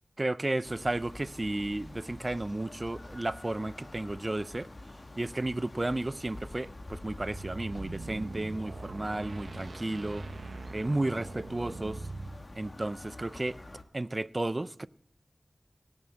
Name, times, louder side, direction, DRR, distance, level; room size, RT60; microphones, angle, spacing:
voice 1, 0.2-4.7 5.2-10.3 10.7-12.0 12.6-13.6 13.9-14.9, right 2 dB, 35° right, 0.4 m, -33 dB
sound 1, 0.6-13.8, left 2 dB, 50° left, 1.3 m, -47 dB
sound 2, 7.2-12.4, right 3 dB, 85° right, 0.9 m, -42 dB
18.0 x 7.1 x 7.7 m
wide cardioid pair, 50°, 0 cm